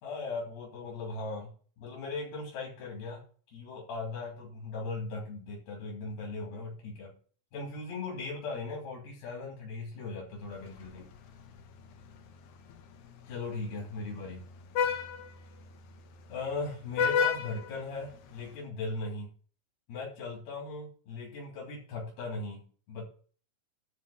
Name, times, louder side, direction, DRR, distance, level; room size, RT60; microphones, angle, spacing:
voice 1, 0.0-3.2 3.5-7.1 7.5-11.1 13.3-14.5 16.3-19.3 19.9-23.1, left 3 dB, 85° left, -2 dB, 5.1 m, -38 dB
Vehicle horn car horn honking, 10.4-18.6, left 6 dB, 65° left, 2.3 m, -35 dB
12.0 x 4.7 x 7.7 m, 0.41 s
omnidirectional pair, 4.3 m